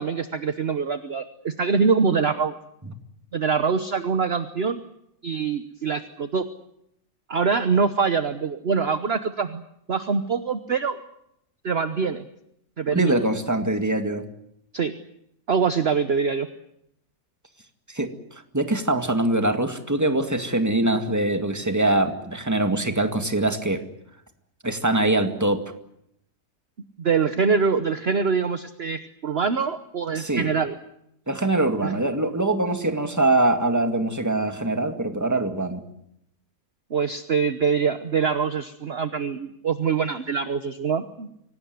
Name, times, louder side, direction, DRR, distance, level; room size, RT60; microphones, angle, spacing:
voice 1, 0.0-2.6 3.3-4.8 5.2-6.4 7.3-9.6 9.9-11.0 11.6-12.2 12.8-13.2 14.7-14.9 15.5-16.5 27.0-30.8 31.8-31.9 36.9-41.3, right 5 dB, 45° right, 10 dB, 1.2 m, -24 dB
voice 2, 12.9-14.2 17.9-18.1 18.5-23.8 24.6-25.6 30.1-30.5 31.3-35.8, right 2 dB, 10° right, 6 dB, 2.0 m, -23 dB
25.0 x 18.5 x 9.4 m, 0.78 s
omnidirectional pair, 1.6 m